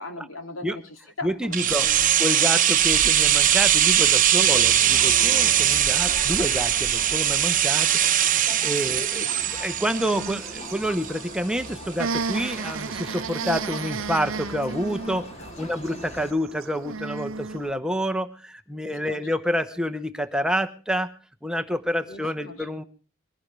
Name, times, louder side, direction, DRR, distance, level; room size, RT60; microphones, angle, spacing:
voice 1, 0.0-2.2 4.4-4.7 8.9-9.3 15.4-15.5 18.8-19.2 22.1-22.6, left 2 dB, 85° left, 6 dB, 2.7 m, -39 dB
voice 2, 1.2-1.9 2.2-9.3 9.6-15.3 15.6-21.1 21.4-22.8, equal, 5° right, 9 dB, 0.9 m, -28 dB
sound 1, 1.5-11.4 11.6-11.7, right 10 dB, 40° right, 0.9 m, -21 dB
Crowd, 4.4-16.3, left 1 dB, 30° left, 1.7 m, -41 dB
sound 2, 9.8-17.8, right 4 dB, 80° right, 0.7 m, -34 dB
22.5 x 17.0 x 3.3 m, 0.36 s
head